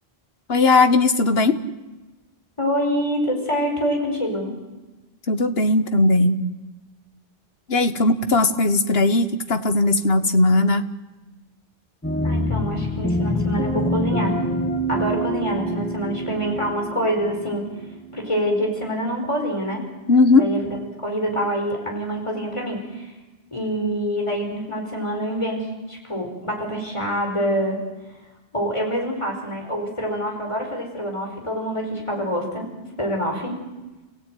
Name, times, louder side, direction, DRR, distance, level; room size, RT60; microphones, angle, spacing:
voice 1, 0.5-1.6 5.3-6.4 7.7-10.9 20.1-20.5, left 2 dB, 70° left, 9 dB, 1.7 m, -18 dB
voice 2, 2.6-4.5 12.2-14.4 14.9-17.6 18.1-19.8 20.3-20.6 21.0-23.1 23.5-27.8 28.5-32.7 33.0-33.5, equal, 30° left, 1 dB, 5.1 m, -26 dB
sound 1, 12.0-18.6, equal, 10° left, 2.0 m, -26 dB
30.0 x 17.0 x 9.3 m, 1.1 s
omnidirectional pair, 1.1 m